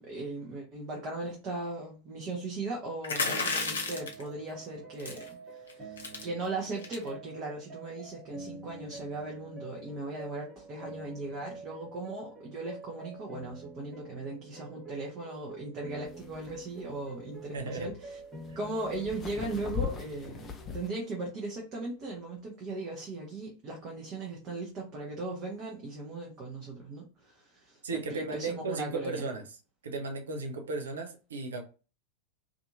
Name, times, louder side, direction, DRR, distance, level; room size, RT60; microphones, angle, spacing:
voice 1, 0.0-18.2 18.6-29.3, right 2 dB, 30° right, 0.8 m, -38 dB
sound 1, 3.0-4.2 5.0-5.3 5.7-5.8 6.0-6.2 6.8-7.1, left 4 dB, 65° left, 0.7 m, -31 dB
sound 2, 3.3-20.8, right 3 dB, 15° right, 1.1 m, -48 dB
sound 3, 16.1-20.9, left 7 dB, 25° left, 0.5 m, -40 dB
voice 2, 17.5-17.9 18.5-18.6 27.8-29.6 29.8-31.6, right 3 dB, 65° right, 0.5 m, -35 dB
2.6 x 2.5 x 2.6 m
figure-of-eight pair, 90°, 0 cm